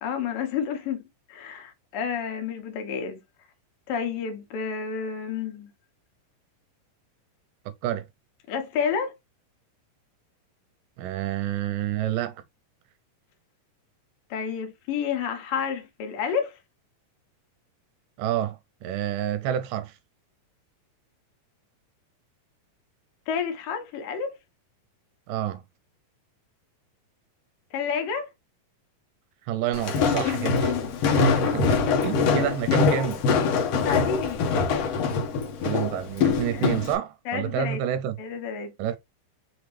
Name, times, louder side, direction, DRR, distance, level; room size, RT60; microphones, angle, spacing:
voice 1, 0.0-1.0 1.3-3.2 3.9-5.7 8.5-9.1 14.3-16.6 23.3-24.3 27.7-28.3 30.2-31.0 32.5-32.6 33.7-34.4 36.5-36.7 37.3-37.8 38.2-38.7, left 7 dB, 80° left, 2.8 m, -30 dB
voice 2, 11.0-12.4 18.2-19.9 25.3-25.6 29.5-30.7 31.1-31.8 32.0-33.2 35.6-38.2 38.8-39.0, right 11 dB, 80° right, 2.1 m, -28 dB
Walk footsteps, 29.7-37.0, left 5 dB, 65° left, 1.8 m, -24 dB
5.6 x 2.9 x 3.2 m
omnidirectional pair, 4.0 m